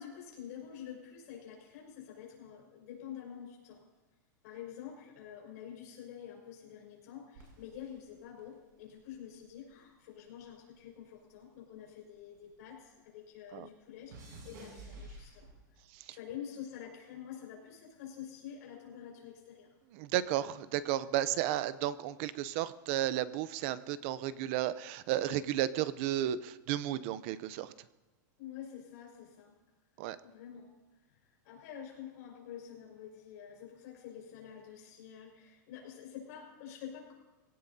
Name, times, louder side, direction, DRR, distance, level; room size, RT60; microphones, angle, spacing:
voice 1, 0.0-3.8 4.4-15.5 16.1-19.7 21.1-21.3 28.4-29.5 30.2-30.7 31.4-37.1, left 9 dB, 50° left, -1 dB, 5.3 m, -48 dB
sound 1, 7.3-9.8 10.1-12.8 13.0-15.9 16.6-17.0, right 2 dB, 60° right, 6.9 m, -53 dB
voice 2, 19.9-27.9 30.0-30.2, right 12 dB, 40° right, 15 dB, 0.6 m, -33 dB
22.5 x 17.0 x 2.8 m, 1.1 s
supercardioid pair, 165°, 11 cm